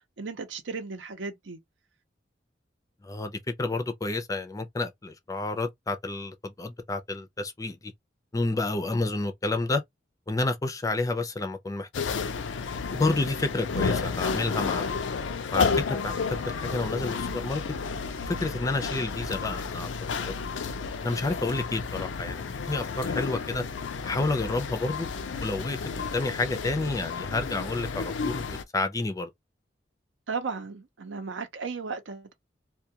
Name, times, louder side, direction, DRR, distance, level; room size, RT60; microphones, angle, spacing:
voice 1, 0.2-1.6 30.3-32.3, right 4 dB, 85° right, 0.6 m, -35 dB
voice 2, 3.0-7.9 8.3-9.8 10.3-11.9 12.9-15.0 15.5-16.1 16.6-17.6 18.3-19.9 20.2-20.3 21.0-23.6 24.0-25.1 25.4-29.3, left 2 dB, 20° left, 0.4 m, -30 dB
sound 1, 11.9-28.6, left 5 dB, 85° left, 0.4 m, -31 dB
2.3 x 2.2 x 2.8 m
head